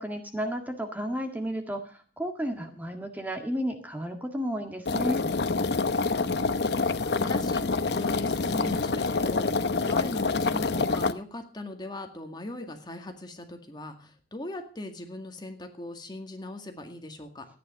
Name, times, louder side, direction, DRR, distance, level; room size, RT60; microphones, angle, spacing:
voice 1, 0.0-5.2, equal, 10° right, 4 dB, 1.7 m, -32 dB
sound 1, 4.9-11.1, left 3 dB, 65° left, 0.8 m, -26 dB
voice 2, 5.8-17.5, left 1 dB, 25° left, 5 dB, 2.0 m, -40 dB
14.0 x 9.8 x 6.7 m, 0.40 s
head